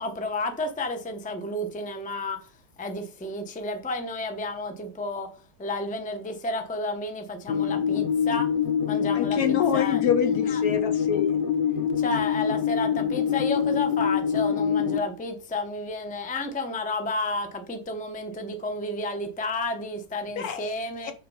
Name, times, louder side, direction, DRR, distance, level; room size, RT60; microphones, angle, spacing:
voice 1, 0.0-2.5 2.8-8.5 8.9-10.0 10.5-10.6 12.0-21.1, left 2 dB, 10° left, 0.5 m, -31 dB
sound 1, 7.5-15.0, left 8 dB, 90° left, 1.5 m, -25 dB
voice 2, 9.1-11.4 20.4-20.7 21.0-21.1, left 8 dB, 65° left, 1.0 m, -27 dB
6.1 x 4.4 x 5.4 m
omnidirectional pair, 1.8 m